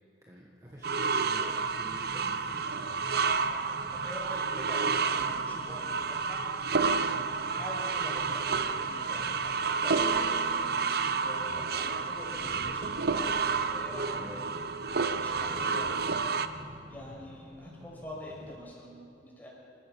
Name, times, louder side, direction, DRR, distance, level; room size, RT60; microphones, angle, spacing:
voice 1, 0.2-2.7 14.1-14.6 15.7-15.8, equal, 20° right, -3 dB, 1.6 m, -48 dB
sound 1, 0.6-18.6, equal, 40° right, 2.8 m, -49 dB
sound 2, 0.8-16.5, right 5 dB, 60° right, 0.8 m, -30 dB
voice 2, 3.5-6.8 7.0-10.7 11.0-13.4 13.7-14.2 15.1-16.1 16.9-19.5, left 1 dB, 10° left, -4 dB, 6.1 m, -45 dB
28.0 x 14.5 x 6.9 m, 2.7 s
head